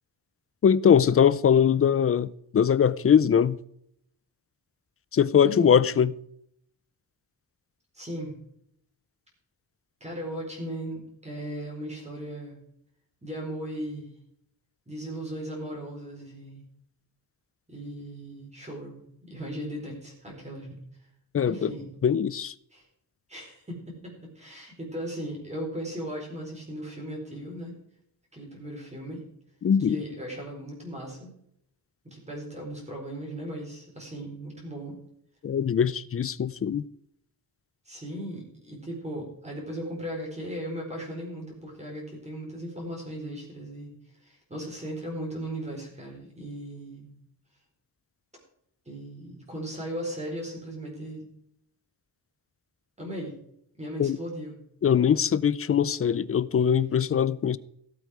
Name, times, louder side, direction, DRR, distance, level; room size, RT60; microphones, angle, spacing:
voice 1, 0.6-3.6 5.1-6.1 21.3-21.7 22.0-22.5 29.6-30.0 35.4-36.8 54.0-54.2 54.8-57.6, left 8 dB, 35° left, 0.4 m, -22 dB
voice 2, 5.4-5.7 7.9-8.3 10.0-12.6 13.2-14.1 14.9-16.7 17.7-20.8 21.5-21.9 22.7-22.8 23.3-27.7 28.3-29.2 29.8-31.3 32.0-35.0 37.9-43.9 44.2-47.1 48.9-51.3 53.0-53.3 53.8-54.6, equal, 15° right, 4.3 m, -37 dB
17.0 x 8.2 x 4.9 m
wide cardioid pair, 170°, 40 cm